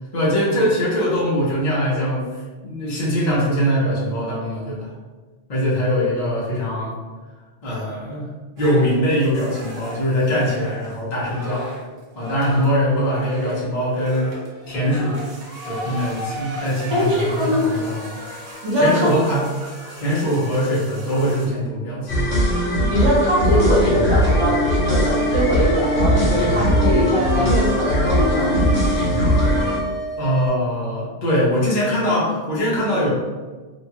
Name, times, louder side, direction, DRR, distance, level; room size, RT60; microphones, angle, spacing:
voice 1, 0.1-2.3 2.6-4.9 5.5-7.0 7.6-8.3 8.6-11.6 12.1-14.3 14.7-15.3 15.6-18.2 18.8-19.4 19.9-22.3 22.7-22.9 30.2-33.1, equal, 40° left, -6 dB, 0.7 m, -22 dB
sound 1, 8.6-21.5, equal, 65° right, 1.0 m, -37 dB
voice 2, 16.9-17.6 18.6-19.1 22.9-28.7, equal, 30° right, -6 dB, 0.8 m, -21 dB
sound 2, 22.1-29.8, equal, 65° left, 1.1 m, -19 dB
sound 3, 23.8-30.5, right 1 dB, 10° left, 1.0 m, -30 dB
2.8 x 2.2 x 2.8 m, 1.3 s
omnidirectional pair, 1.2 m